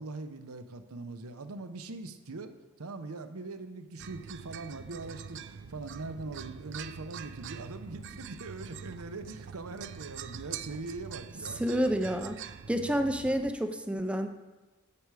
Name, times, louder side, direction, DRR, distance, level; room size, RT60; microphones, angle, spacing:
voice 1, 0.0-2.5 2.8-11.6, right 3 dB, 90° right, 9 dB, 0.8 m, -41 dB
sound 1, 4.0-13.5, right 7 dB, 55° right, 0.5 m, -44 dB
voice 2, 11.6-12.4 12.7-14.3, equal, 5° right, 7 dB, 0.5 m, -29 dB
9.9 x 7.9 x 4.8 m, 1.2 s
head